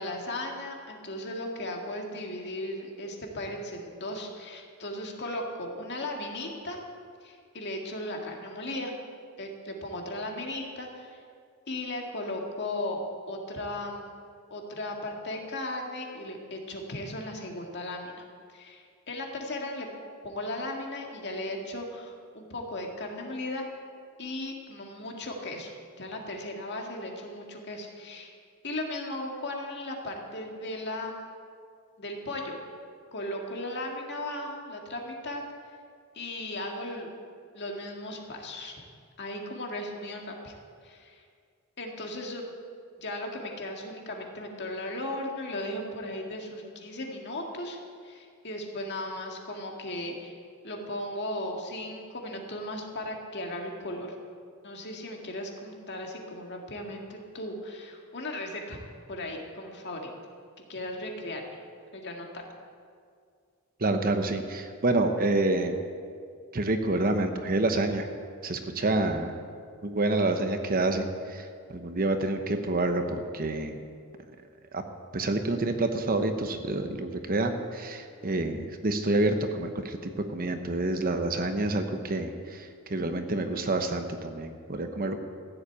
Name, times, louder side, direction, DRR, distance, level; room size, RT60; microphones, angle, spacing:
voice 1, 0.0-6.8 7.2-8.9 9.4-11.2 11.7-14.1 14.5-18.2 18.5-19.9 20.2-23.7 24.2-25.7 26.0-28.3 28.6-31.2 32.0-32.5 33.1-35.8 36.1-37.1 37.5-38.8 39.2-40.5 40.8-41.2 41.8-42.4 43.0-50.4 50.6-54.1 54.6-58.8 59.1-60.1 60.6-61.6 61.9-62.3, left 1 dB, 50° left, 1 dB, 2.0 m, -36 dB
voice 2, 63.8-65.8 66.5-68.1 68.4-69.3 69.8-73.8 74.7-74.8 75.1-80.0 80.3-85.2, right 2 dB, 40° right, 7 dB, 0.9 m, -28 dB
14.5 x 8.0 x 8.7 m, 2.2 s
head